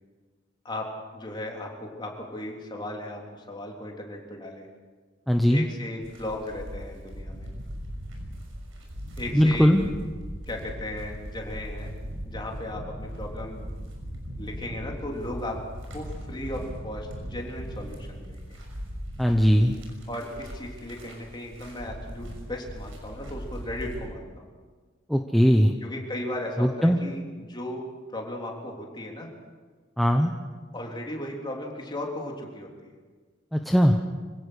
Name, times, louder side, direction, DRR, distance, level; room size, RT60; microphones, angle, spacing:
voice 1, 0.6-4.7 5.5-7.5 9.2-9.7 10.5-11.9 12.3-13.7 14.4-15.6 15.9-18.6 20.1-24.5 25.8-27.8 28.1-29.3 30.7-32.9, left 1 dB, 25° left, 0 dB, 3.6 m, -36 dB
voice 2, 5.3-5.7 9.3-9.8 19.2-19.7 25.1-25.7 26.6-27.0 30.0-30.3 33.5-34.0, equal, ahead, 3 dB, 1.0 m, -19 dB
sound 1, 6.0-24.1, equal, 90° right, 6.0 m, -39 dB
25.5 x 17.0 x 6.5 m, 1.5 s
head